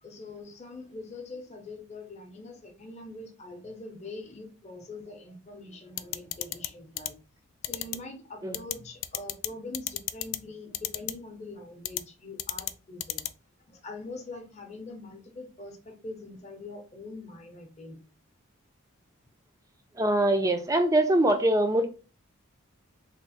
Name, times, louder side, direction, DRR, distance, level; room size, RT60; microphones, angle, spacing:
voice 1, 0.0-7.1 7.6-13.2 13.7-18.0, left 2 dB, 30° left, 0.7 m, -43 dB
sound 1, 6.0-6.7 7.0-7.1 7.6-8.0 8.5-8.7 9.0-9.5 9.7-10.4 10.7-11.1 11.8-12.0 12.4-12.7 13.0-13.3, left 15 dB, 65° left, 0.3 m, -31 dB
voice 2, 20.0-21.8, right 1 dB, 15° right, 0.4 m, -23 dB
3.5 x 2.1 x 4.1 m
head